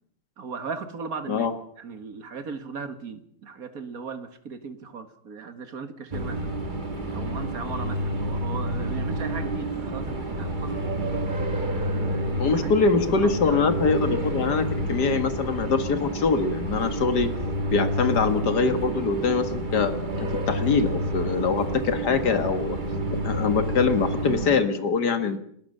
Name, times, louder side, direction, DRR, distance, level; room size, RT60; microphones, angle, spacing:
voice 1, 0.4-1.5 1.8-6.5 7.1-11.1 11.7-14.1, right 5 dB, 50° right, 10 dB, 2.1 m, -37 dB
sound 1, 6.1-24.5, right 1 dB, 25° right, 2.0 m, -29 dB
voice 2, 12.4-17.3 17.7-19.9 20.2-22.8 23.2-25.4, left 4 dB, 60° left, 10 dB, 2.2 m, -23 dB
29.5 x 13.0 x 6.7 m, 0.69 s
omnidirectional pair, 2.1 m